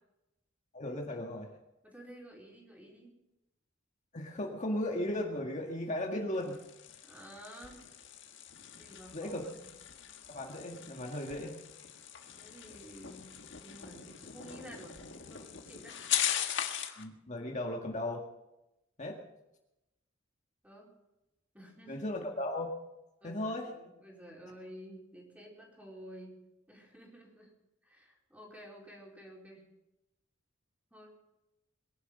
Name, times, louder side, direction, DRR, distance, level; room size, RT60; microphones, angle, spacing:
voice 1, 0.7-1.6 4.1-6.6 9.1-9.5 10.3-11.6 16.9-18.2 19.0-19.2 21.9-22.7 23.2-23.7, left 1 dB, 40° left, 1 dB, 1.9 m, -36 dB
voice 2, 1.8-3.1 7.0-7.8 8.7-9.3 9.6-9.7 12.4-13.3 13.6-15.0 15.3-16.0 20.6-20.9 21.5-22.0 23.2-26.4 26.7-27.5 27.8-29.6 30.9-31.3, equal, 10° right, -2 dB, 4.5 m, -51 dB
sound 1, 6.3-17.0, left 10 dB, 65° left, 1.7 m, -40 dB
22.5 x 11.5 x 5.5 m, 0.93 s
head